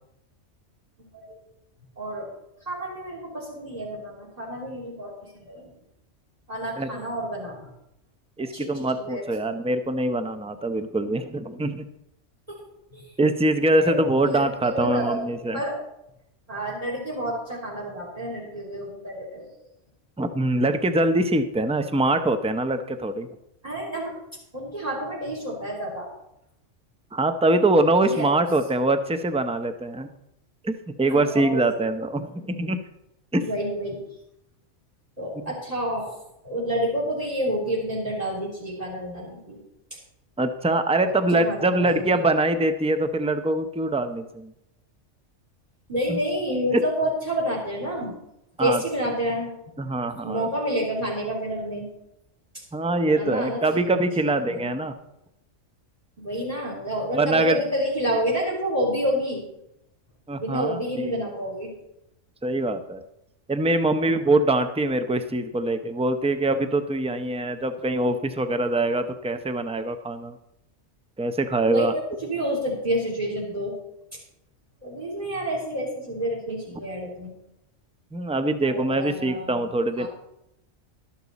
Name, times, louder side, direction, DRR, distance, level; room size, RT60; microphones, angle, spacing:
voice 1, 1.0-1.4 1.9-2.3 2.6-5.7 6.5-7.7 8.5-9.5 12.5-12.6 12.9-13.2 13.8-15.8 16.5-19.7 23.6-24.1 24.5-26.1 28.0-28.3 31.1-31.6 33.4-34.0 35.2-36.1 36.4-39.6 39.9-40.0 41.0-42.1 45.9-48.1 48.6-49.5 50.2-51.9 53.0-54.0 54.3-54.7 56.2-59.4 60.4-61.7 71.6-73.7 74.1-74.2 74.8-77.3 78.6-80.1, equal, 30° right, -3 dB, 3.5 m, -29 dB
voice 2, 8.4-11.9 13.2-15.6 20.2-23.3 27.1-30.1 30.6-32.8 33.3-33.4 35.4-35.5 40.4-44.5 46.1-46.2 46.7-46.8 48.6-48.8 49.8-50.5 52.7-54.9 57.1-57.6 60.3-60.8 62.4-63.0 63.5-70.3 71.2-71.9 78.1-80.1, right 2 dB, 10° right, 9 dB, 0.4 m, -23 dB
12.5 x 12.0 x 4.1 m, 0.83 s
omnidirectional pair, 1.2 m